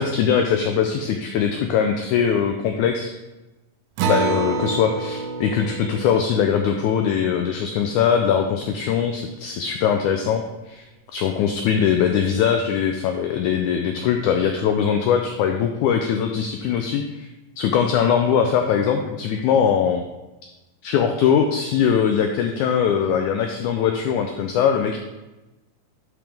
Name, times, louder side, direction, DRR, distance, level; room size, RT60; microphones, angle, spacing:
voice 1, 0.0-3.1 4.1-10.9 11.1-17.3 17.6-20.0 20.8-25.0, left 7 dB, 90° left, 4 dB, 1.7 m, -21 dB
Acoustic guitar, 4.0-8.9, right 5 dB, 80° right, 1.9 m, -29 dB
10.5 x 5.0 x 3.5 m, 1.1 s
omnidirectional pair, 4.0 m